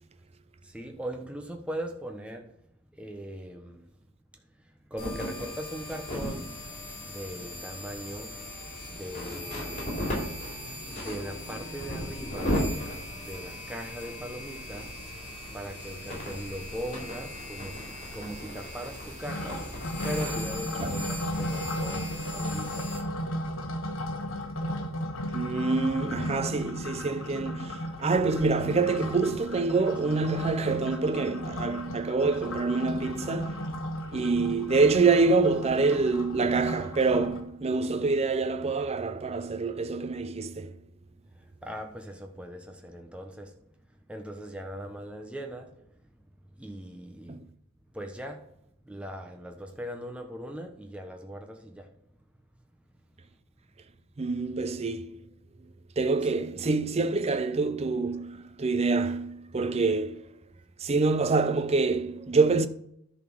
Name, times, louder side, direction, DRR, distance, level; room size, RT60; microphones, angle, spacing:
voice 1, 0.6-2.5 2.9-3.8 4.9-6.6 7.0-8.4 8.9-10.0 10.9-12.7 13.1-15.0 15.2-19.8 20.0-22.9 41.3-43.6 44.1-46.1 46.6-47.4 47.9-48.5 48.8-51.9 56.2-56.3, equal, 5° right, 1.0 m, -40 dB
sound 1, 5.0-23.0, equal, 35° left, 3.6 m, -36 dB
sound 2, 19.3-37.4, equal, 65° left, 1.4 m, -35 dB
voice 2, 25.3-33.6 34.1-40.7 47.3-47.4 54.2-55.2 56.0-60.2 60.8-62.7, right 4 dB, 30° right, 0.5 m, -26 dB
10.5 x 4.3 x 6.2 m
head